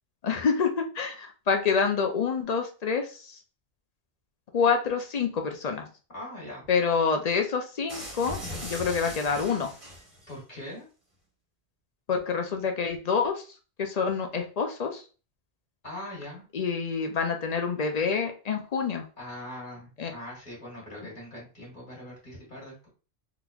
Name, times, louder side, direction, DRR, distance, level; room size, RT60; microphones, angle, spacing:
voice 1, 0.2-3.4 4.5-5.9 6.7-9.7 12.1-13.5 13.8-15.1 16.5-19.0 20.0-20.1, left 5 dB, 55° left, 5 dB, 0.4 m, -27 dB
voice 2, 6.1-6.6 10.3-10.8 15.8-16.4 19.2-22.9, left 1 dB, 40° left, -4 dB, 2.0 m, -41 dB
sound 1, 7.9-10.3, equal, 30° right, 1.2 m, -39 dB
3.9 x 2.9 x 2.3 m, 0.36 s
omnidirectional pair, 1.2 m